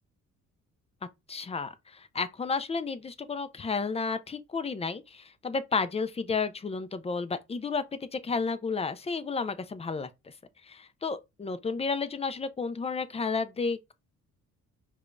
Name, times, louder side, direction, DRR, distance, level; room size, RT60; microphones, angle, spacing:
voice 1, 1.3-7.8 8.1-10.3 10.7-13.9, left 4 dB, 20° left, 0.4 m, -32 dB
4.8 x 2.3 x 2.5 m
cardioid pair, 90°, 30 cm